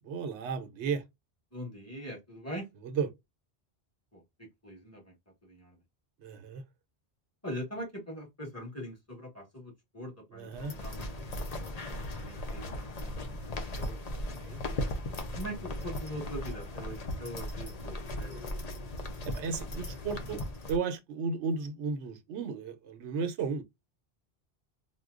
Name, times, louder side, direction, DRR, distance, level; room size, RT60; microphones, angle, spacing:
voice 1, 0.1-1.0 2.8-3.1 6.2-6.6 10.3-10.7 14.3-14.6 19.3-23.6, right 5 dB, 90° right, 1.0 m, -34 dB
voice 2, 1.5-2.7 4.1-5.1 5.4-5.8 7.4-11.0 11.4-14.0 15.3-18.4 20.2-20.3, equal, 15° left, 1.5 m, -42 dB
sound 1, 10.5-20.8, left 1 dB, 45° left, 0.6 m, -37 dB
4.2 x 2.2 x 2.4 m
omnidirectional pair, 1.1 m